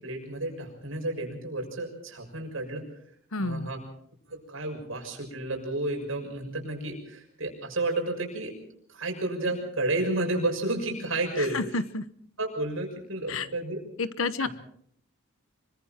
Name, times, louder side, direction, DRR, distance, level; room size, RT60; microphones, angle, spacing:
voice 1, 0.0-2.8 3.4-3.8 4.3-8.5 8.9-11.6 12.4-13.8 14.4-14.5, right 2 dB, 70° right, 2 dB, 6.5 m, -31 dB
voice 2, 3.3-3.7 11.4-12.0 13.3-13.5 14.0-14.5, left 3 dB, 75° left, 13 dB, 1.1 m, -30 dB
26.0 x 23.5 x 4.5 m, 0.65 s
head